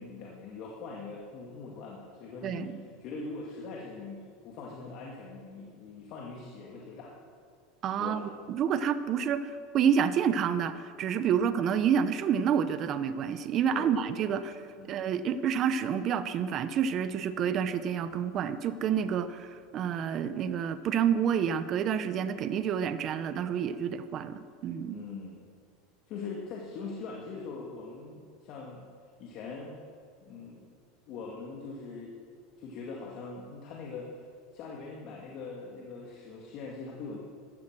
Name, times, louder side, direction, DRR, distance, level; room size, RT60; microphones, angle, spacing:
voice 1, 0.0-7.1 8.0-8.3 11.4-11.6 13.7-14.3 14.8-15.0 24.9-25.4 26.1-28.9 29.2-29.7 30.2-30.7 31.1-32.2 32.6-34.2 34.5-37.2, left 4 dB, 50° left, -2 dB, 2.2 m, -42 dB
voice 2, 2.4-2.8 7.8-14.6 14.9-25.0, right 8 dB, 40° right, 12 dB, 0.8 m, -29 dB
14.0 x 13.0 x 6.2 m, 2.2 s
supercardioid pair, 135°, 0 cm